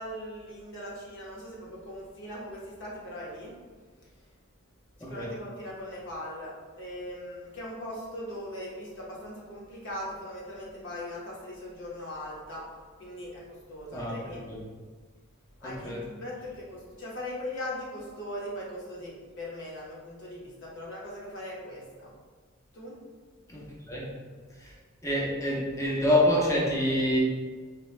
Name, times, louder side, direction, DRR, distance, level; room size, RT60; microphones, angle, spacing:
voice 1, 0.0-3.5 5.0-12.7 13.0-14.4 15.6-22.1 22.7-23.0, left 1 dB, 60° left, -4 dB, 0.9 m, -40 dB
voice 2, 5.0-5.3 13.9-14.6 15.6-16.0 23.5-24.1 24.6-24.7 25.0-27.2, left 1 dB, 15° left, -4 dB, 0.6 m, -27 dB
3.0 x 2.2 x 3.1 m, 1.5 s
head